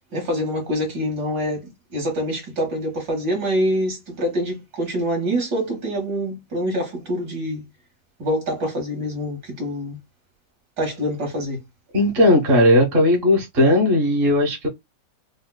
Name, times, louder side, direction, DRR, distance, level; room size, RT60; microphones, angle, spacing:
voice 1, 0.1-7.6 8.2-10.0 10.8-11.6, equal, 60° right, 1.9 m, -25 dB
voice 2, 11.9-14.7, left 1 dB, 40° right, 1.1 m, -17 dB
5.2 x 2.2 x 2.2 m
omnidirectional pair, 2.0 m